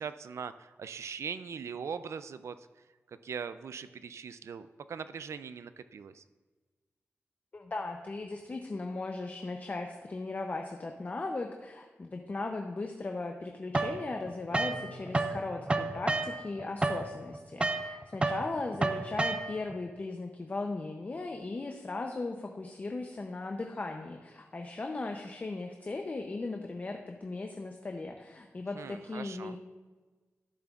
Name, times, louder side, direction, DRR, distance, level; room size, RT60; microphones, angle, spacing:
voice 1, 0.0-2.6 3.1-6.2 28.7-29.6, right 6 dB, 80° right, 12 dB, 0.4 m, -41 dB
voice 2, 7.5-29.6, left 3 dB, 35° left, 3 dB, 0.5 m, -37 dB
sound 1, 13.7-15.4 15.7-19.8, right 2 dB, 25° right, 0.5 m, -31 dB
sound 2, 14.5-18.0, right 1 dB, 55° right, 1.0 m, -51 dB
13.5 x 7.6 x 2.4 m, 1.3 s
wide cardioid pair, 125°, 5 cm